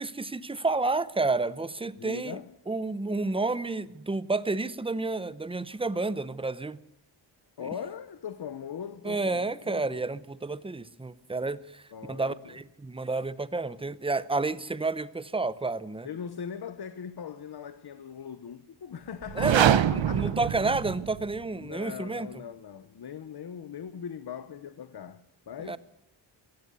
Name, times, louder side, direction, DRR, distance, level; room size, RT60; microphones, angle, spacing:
voice 1, 0.0-2.4 2.7-6.8 9.0-11.8 12.1-16.1 19.4-19.7 20.1-22.3 25.7-25.8, right 3 dB, 10° right, 0.7 m, -30 dB
voice 2, 2.0-2.5 7.6-10.1 11.9-12.6 16.0-20.4 21.6-25.8, left 7 dB, 60° left, 1.0 m, -40 dB
sound 1, 19.2-21.4, right 9 dB, 75° right, 0.9 m, -24 dB
22.5 x 17.0 x 6.9 m
wide cardioid pair, 165°, 45 cm